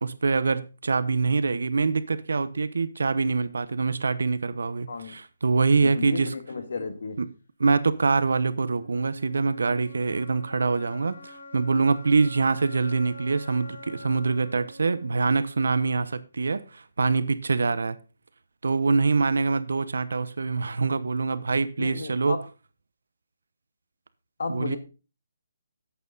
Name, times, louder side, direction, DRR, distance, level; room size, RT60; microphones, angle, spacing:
voice 1, 0.0-6.3 7.2-7.3 7.6-18.0 18.6-22.4 24.5-24.8, right 4 dB, 80° right, 1.0 m, -24 dB
voice 2, 5.8-7.2 21.8-22.4 24.4-24.8, left 4 dB, 55° left, 1.8 m, -33 dB
sound 1, 8.1-16.0, left 1 dB, 75° left, 4.0 m, -46 dB
11.0 x 8.2 x 4.0 m
hypercardioid pair, 180°, 0 cm